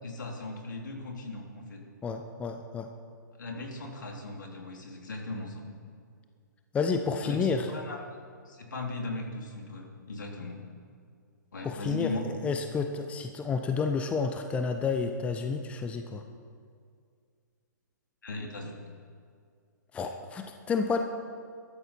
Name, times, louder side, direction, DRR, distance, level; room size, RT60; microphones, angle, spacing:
voice 1, 0.0-1.8 3.4-5.6 7.2-8.0 8.4-10.6 11.5-12.3 18.2-18.7 20.0-20.1, left 2 dB, 70° left, 0 dB, 3.3 m, -38 dB
voice 2, 2.0-2.9 6.7-7.7 11.6-16.2 19.9-21.0, left 5 dB, 10° left, 6 dB, 0.7 m, -30 dB
20.0 x 13.0 x 4.5 m, 2.2 s
figure-of-eight pair, 125°, 11 cm